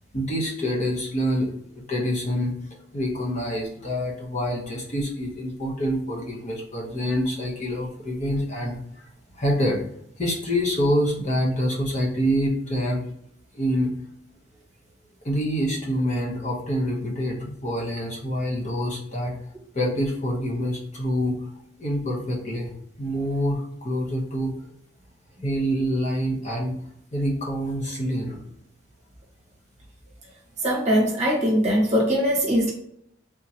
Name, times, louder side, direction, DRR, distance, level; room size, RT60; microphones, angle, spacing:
voice 1, 0.1-2.5 2.9-8.8 9.3-9.8 10.2-13.0 13.5-13.9 15.2-19.3 19.7-21.4 21.8-22.7 23.0-24.5 25.4-26.8 27.1-28.4, equal, 40° left, -2 dB, 0.9 m, -26 dB
voice 2, 30.6-32.7, equal, 35° right, -2 dB, 1.1 m, -21 dB
3.6 x 2.9 x 2.8 m, 0.70 s
head